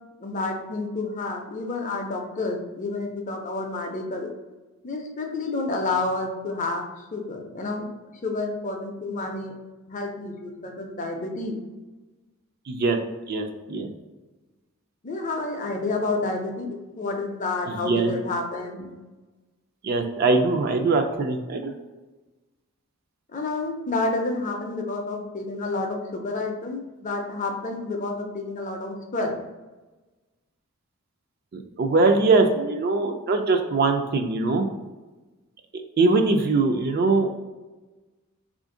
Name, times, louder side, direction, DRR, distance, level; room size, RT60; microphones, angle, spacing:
voice 1, 0.2-4.3 4.8-7.9 8.2-9.6 9.9-11.6 15.0-18.9 23.3-29.4, left 3 dB, 35° left, 3 dB, 0.5 m, -29 dB
voice 2, 12.7-13.0 13.3-13.9 17.7-18.1 19.8-21.7 31.5-34.6 36.0-37.3, right 3 dB, 45° right, 5 dB, 0.3 m, -22 dB
3.4 x 2.5 x 3.7 m, 1.2 s
head